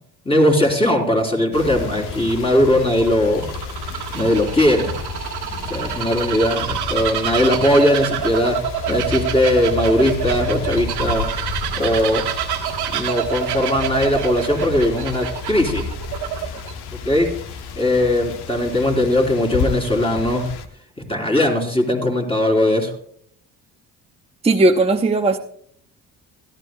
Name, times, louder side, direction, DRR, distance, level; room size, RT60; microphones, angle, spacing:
voice 1, 0.3-3.4 4.1-4.9 5.7-8.6 8.9-11.3 11.8-12.2 12.9-15.9 17.0-17.3 17.8-20.5 21.1-22.9, left 1 dB, 15° left, 1 dB, 3.6 m, -19 dB
sound 1, 1.5-20.7, left 5 dB, 75° left, 1.1 m, -31 dB
Bird vocalization bird call bird song, 1.8-16.7, right 10 dB, 80° right, 1.5 m, -27 dB
voice 2, 24.4-25.4, right 2 dB, 15° right, 3 dB, 0.8 m, -16 dB
17.0 x 12.5 x 2.3 m, 0.62 s
supercardioid pair, 65°, 39 cm